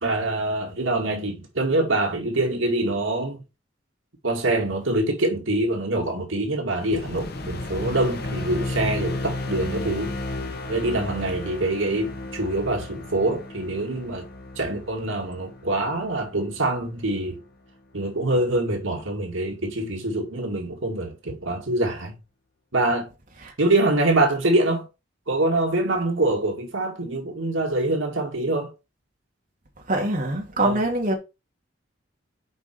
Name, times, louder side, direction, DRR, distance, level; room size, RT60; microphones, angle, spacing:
voice 1, 0.0-3.4 4.2-10.1 10.7-14.3 14.6-17.4 17.9-22.2 22.7-23.1 23.6-24.9 25.3-28.7 30.6-30.8, right 2 dB, 85° right, 2.3 m, -25 dB
sound 1, 6.8-17.2, left 2 dB, 55° left, 1.6 m, -33 dB
voice 2, 29.9-31.1, right 1 dB, 45° right, 2.5 m, -24 dB
8.0 x 5.0 x 4.4 m
head